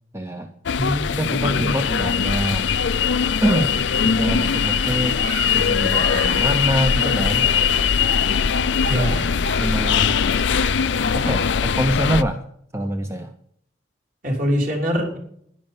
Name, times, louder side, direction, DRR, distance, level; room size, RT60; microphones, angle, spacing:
voice 1, 0.1-0.5 1.1-2.7 3.4-3.7 4.0-5.2 5.5-7.5 8.9-9.3 9.6-10.2 11.1-12.4 12.7-13.3, right 1 dB, 15° right, 6 dB, 0.7 m, -25 dB
sound 1, 0.7-12.2, left 7 dB, 70° left, 0.5 m, -21 dB
voice 2, 0.8-1.9 8.9-9.2 14.2-15.2, equal, 45° right, 0 dB, 3.5 m, -24 dB
sound 2, 3.5-11.5, right 2 dB, 75° right, 1.9 m, -36 dB
11.0 x 10.5 x 5.5 m, 0.68 s
head